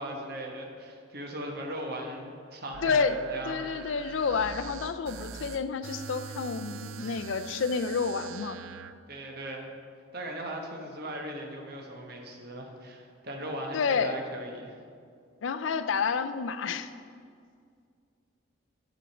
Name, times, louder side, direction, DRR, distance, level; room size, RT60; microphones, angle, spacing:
voice 1, 0.0-3.6 9.1-9.7 10.1-14.8, right 1 dB, 50° right, 1 dB, 1.0 m, -38 dB
sound 1, 2.7-8.9, right 7 dB, 70° right, 0.4 m, -43 dB
voice 2, 2.8-3.2 3.5-8.6 13.7-14.2 15.4-16.9, left 5 dB, 65° left, 11 dB, 0.4 m, -29 dB
7.8 x 5.0 x 7.1 m, 2.2 s
head